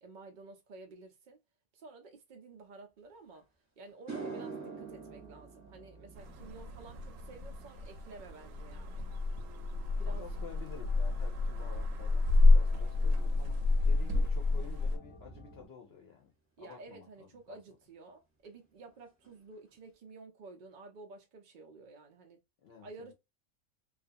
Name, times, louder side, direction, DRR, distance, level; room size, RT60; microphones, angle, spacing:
voice 1, 0.0-1.4 1.7-3.4 3.8-9.1 10.0-10.3 16.6-22.4 22.8-23.1, right 3 dB, 60° right, 0.5 m, -52 dB
sound 1, 3.3-3.4 3.9-12.4 12.7-13.1 16.7-16.8 18.4-18.5 18.8-19.0 19.2-19.8, right 4 dB, 15° right, 0.7 m, -48 dB
sound 2, 4.8-15.7, right 2 dB, 25° left, 0.9 m, -56 dB
sound 3, 6.2-15.0, left 2 dB, 90° right, 1.0 m, -29 dB
voice 2, 10.1-13.6 13.8-16.3 16.6-17.6 22.6-23.1, left 7 dB, 60° left, 0.8 m, -51 dB
2.4 x 2.3 x 2.5 m
omnidirectional pair, 1.3 m